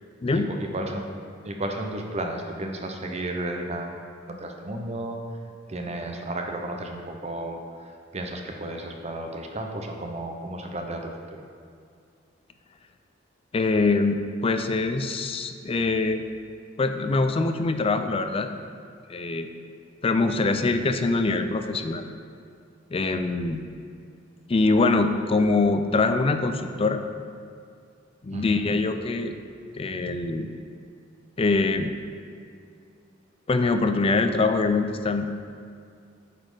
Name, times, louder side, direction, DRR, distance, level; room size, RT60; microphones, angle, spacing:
voice 1, 0.3-1.0 1.4-4.0 4.4-5.2 5.7-11.5 28.3-28.6, right 1 dB, 35° right, 3 dB, 0.7 m, -33 dB
voice 2, 13.5-16.2 16.8-18.5 19.1-19.5 20.0-22.0 22.9-23.6 24.5-27.0 28.2-29.3 29.8-30.5 31.4-31.9 33.5-35.3, left 3 dB, 30° left, 7 dB, 0.4 m, -23 dB
8.8 x 4.2 x 4.9 m, 2.3 s
head